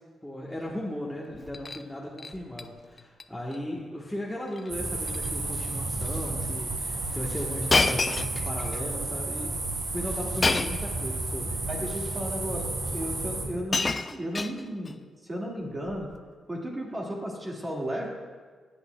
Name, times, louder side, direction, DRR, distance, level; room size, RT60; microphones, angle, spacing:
voice 1, 0.2-8.0 8.4-9.6 9.9-11.6, left 1 dB, 5° left, -4 dB, 1.2 m, -36 dB
Shatter, 1.3-1.8 2.2-2.6 3.0-3.2 3.5-3.6 4.5-4.7 5.0-5.3 6.0-6.1 7.7-8.8 10.4-10.9 11.9-12.0 13.1-13.2 13.4-14.9 15.9-16.2, left 3 dB, 30° left, 0.4 m, -28 dB
sound 1, 4.7-13.4, right 2 dB, 45° right, 2.3 m, -32 dB
voice 2, 11.7-15.0 15.2-16.1 16.5-18.1, equal, 25° right, -2 dB, 1.9 m, -34 dB
15.5 x 8.1 x 2.3 m, 1.5 s
cardioid pair, 80°, 0 cm